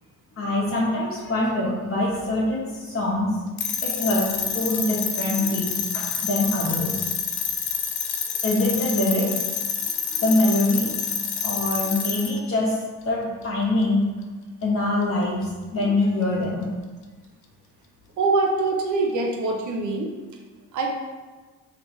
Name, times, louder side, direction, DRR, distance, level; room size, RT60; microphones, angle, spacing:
voice 1, 0.4-3.3 3.8-7.0 8.4-9.3 10.2-10.9 11.4-12.8 13.0-14.1 14.6-15.4 15.7-16.7, left 2 dB, 45° left, -5 dB, 1.0 m, -24 dB
sound 1, 3.6-12.4, left 7 dB, 70° left, 0.6 m, -28 dB
voice 2, 18.2-20.1 20.7-20.9, right 3 dB, 75° right, 1 dB, 0.6 m, -23 dB
4.4 x 3.0 x 3.0 m, 1.3 s
cardioid pair, 90°, 30 cm